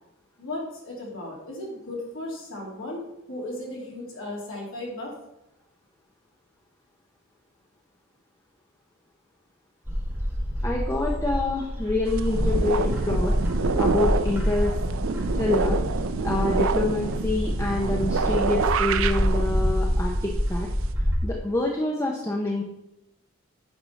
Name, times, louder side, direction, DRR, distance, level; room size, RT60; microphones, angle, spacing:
voice 1, 0.4-5.1, left 1 dB, 70° left, -3 dB, 2.8 m, -35 dB
Bird, 9.8-21.2, equal, 10° right, 1.8 m, -27 dB
voice 2, 10.6-13.3 13.8-14.7 15.3-15.8 16.2-20.7 21.2-22.6, left 2 dB, 15° left, -1 dB, 0.7 m, -26 dB
sound 1, 12.1-20.9, right 5 dB, 70° right, 0.5 m, -28 dB
8.9 x 6.0 x 4.1 m, 0.88 s
head